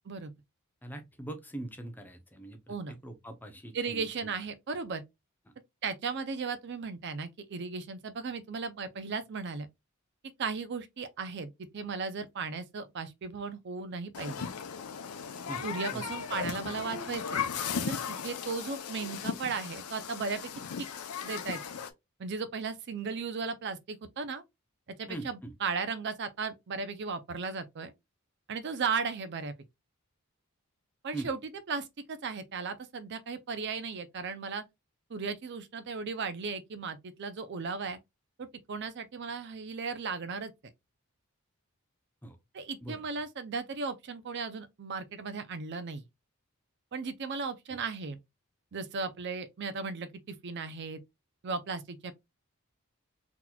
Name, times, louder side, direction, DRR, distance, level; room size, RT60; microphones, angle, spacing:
voice 1, 0.8-4.3 15.5-15.7 15.9-16.1 25.1-25.5 31.1-31.3 42.2-42.4 42.8-43.0, right 1 dB, 10° left, 0.5 m, -42 dB
voice 2, 3.7-5.0 5.8-9.7 10.4-14.5 15.6-17.4 17.9-20.5 21.2-21.6 22.2-24.4 25.0-27.9 28.5-29.5 31.0-31.4 31.7-34.6 35.1-38.0 38.4-40.5 42.5-46.0 46.9-48.2 48.7-51.0 51.4-52.1, right 4 dB, 50° right, 0.4 m, -36 dB
Human group actions, 14.1-21.9, left 7 dB, 85° left, 0.5 m, -36 dB
3.9 x 2.9 x 2.2 m
head